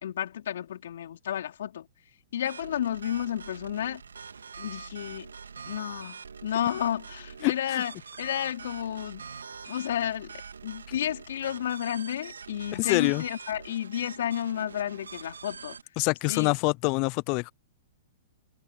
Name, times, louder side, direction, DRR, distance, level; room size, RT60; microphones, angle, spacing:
voice 1, 0.0-1.9 2.3-4.0 4.6-5.3 5.6-7.9 8.2-9.2 9.7-15.8 16.3-16.5, left 10 dB, 65° left, 3.5 m, -32 dB
sound 1, 2.4-15.8, right 6 dB, 80° right, 2.8 m, -44 dB
voice 2, 7.4-7.8 12.7-13.2 16.0-17.5, left 30 dB, 40° left, 0.7 m, -26 dB
hypercardioid pair, 110°, 0 cm